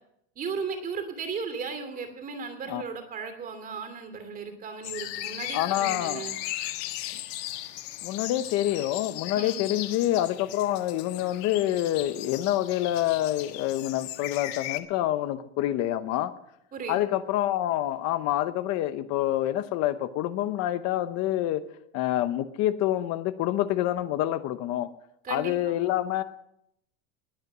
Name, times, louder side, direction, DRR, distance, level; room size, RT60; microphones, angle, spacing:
voice 1, 0.4-6.3 9.3-9.6 16.7-17.0 25.2-25.8, right 5 dB, 25° right, 7 dB, 2.7 m, -36 dB
sound 1, 4.8-14.8, left 15 dB, 70° left, 1.4 m, -37 dB
voice 2, 5.5-6.2 8.0-16.3 16.9-21.6 21.9-24.9 25.3-26.2, left 13 dB, 50° left, 11 dB, 0.9 m, -27 dB
20.5 x 8.4 x 6.1 m, 0.76 s
cardioid pair, 160°, 33 cm